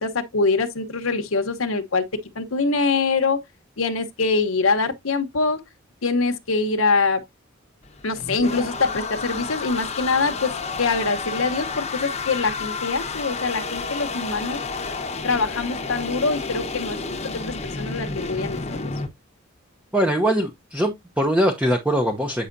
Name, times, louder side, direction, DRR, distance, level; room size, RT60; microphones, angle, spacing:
voice 1, 0.0-2.0 2.3-3.4 3.8-5.6 6.0-7.2 8.0-10.5 10.8-14.6 15.2-17.0 17.4-18.9, left 4 dB, 75° left, 1.0 m, -24 dB
sound 1, 7.8-19.1, left 4 dB, 30° left, 1.0 m, -31 dB
voice 2, 19.9-22.5, equal, 5° right, 0.8 m, -22 dB
8.5 x 5.6 x 2.6 m
head